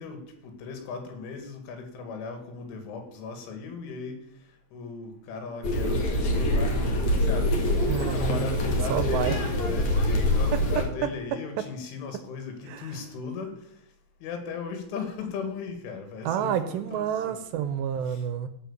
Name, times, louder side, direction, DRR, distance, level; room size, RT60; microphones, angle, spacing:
voice 1, 0.0-4.2 4.7-7.5 7.9-13.6 14.2-17.4 18.1-18.2, left 5 dB, 90° left, 5 dB, 4.7 m, -37 dB
sound 1, 5.6-10.8, left 1 dB, 50° left, 2.9 m, -25 dB
voice 2, 7.9-9.4 10.5-11.1 12.7-12.9 16.3-18.5, right 9 dB, 80° right, 11 dB, 2.7 m, -29 dB
16.5 x 5.9 x 7.3 m, 0.73 s
omnidirectional pair, 5.4 m